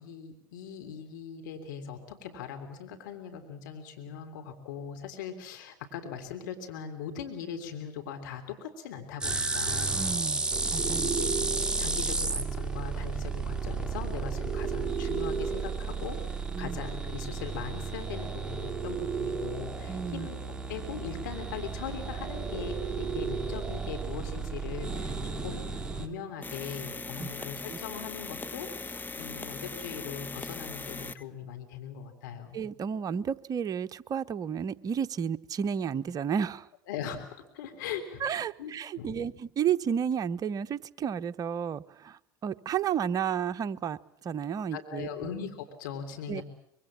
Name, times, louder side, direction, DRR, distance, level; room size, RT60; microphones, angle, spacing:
voice 1, 0.0-10.0 10.8-32.6 36.9-37.3 37.5-38.2 38.6-39.3 44.7-46.4, left 7 dB, 75° left, 5 dB, 3.4 m, -40 dB
sound 1, 9.2-26.1, right 4 dB, 10° right, 3.5 m, -32 dB
voice 2, 9.9-11.0 16.5-16.8 19.9-20.3 27.2-27.8 32.5-36.7 38.2-45.1 46.3-46.4, right 8 dB, 35° right, 12 dB, 1.0 m, -32 dB
sound 2, 26.4-31.2, left 3 dB, 15° left, 1.6 m, -39 dB
25.0 x 24.0 x 7.6 m, 0.74 s
hypercardioid pair, 80°, 10 cm